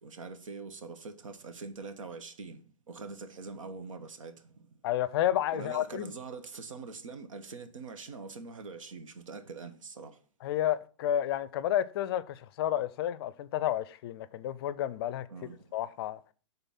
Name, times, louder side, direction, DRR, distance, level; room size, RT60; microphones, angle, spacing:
voice 1, 0.0-2.6 2.9-4.3 5.5-10.2 15.3-15.6, right 4 dB, 85° right, 1.1 m, -43 dB
voice 2, 4.8-6.1 10.4-16.2, left 11 dB, 50° left, 0.5 m, -31 dB
7.0 x 3.9 x 5.8 m
hypercardioid pair, 135°, 16 cm